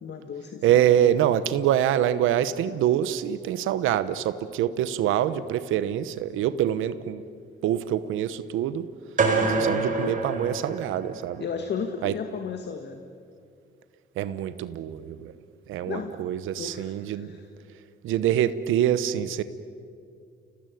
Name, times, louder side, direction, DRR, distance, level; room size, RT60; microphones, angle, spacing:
voice 1, 0.0-0.6 9.4-10.1 11.4-13.0 15.8-16.1 16.6-17.5, left 6 dB, 60° left, 6 dB, 1.9 m, -35 dB
voice 2, 0.6-7.2 7.6-8.8 9.6-11.4 12.0-12.1 14.2-15.3 15.7-17.3 18.0-19.4, right 11 dB, 90° right, 13 dB, 1.0 m, -25 dB
sound 1, 9.2-11.3, right 3 dB, 40° right, 5.1 m, -26 dB
29.0 x 18.5 x 9.2 m, 2.3 s
cardioid pair, 90°, 20 cm